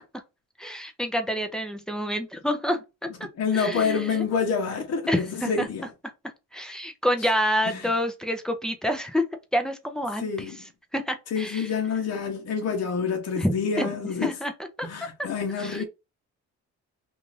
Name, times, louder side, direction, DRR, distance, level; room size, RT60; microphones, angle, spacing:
voice 1, 0.6-3.3 3.5-4.2 5.1-5.7 6.5-9.3 9.5-10.5 10.9-11.7 13.4-13.9 14.2-14.5 14.8-14.9 15.6-15.8, equal, ahead, 0.6 m, -28 dB
voice 2, 3.4-5.9 7.7-7.8 10.2-10.6 11.3-14.3 14.8-15.8, left 5 dB, 55° left, 0.9 m, -27 dB
2.6 x 2.5 x 3.2 m
cardioid pair, 90°, 30 cm